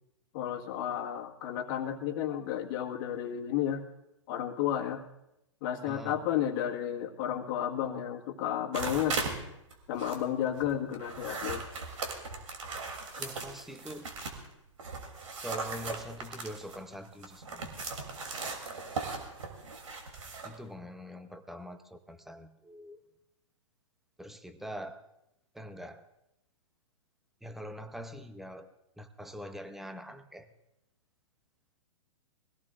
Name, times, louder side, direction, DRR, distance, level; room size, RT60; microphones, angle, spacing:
voice 1, 0.3-3.8 4.3-5.0 5.6-9.2 9.9-11.6, left 10 dB, 40° left, 2 dB, 1.7 m, -32 dB
voice 2, 5.9-6.2 13.2-14.1 15.4-17.7 20.4-23.0 24.2-25.1 25.5-26.0 27.4-30.5, equal, ahead, 8 dB, 0.8 m, -44 dB
sound 1, 8.7-9.4 9.7-14.5 14.8-20.5, right 3 dB, 75° right, 3.1 m, -38 dB
22.5 x 17.0 x 2.5 m, 0.87 s
hypercardioid pair, 125°, 17 cm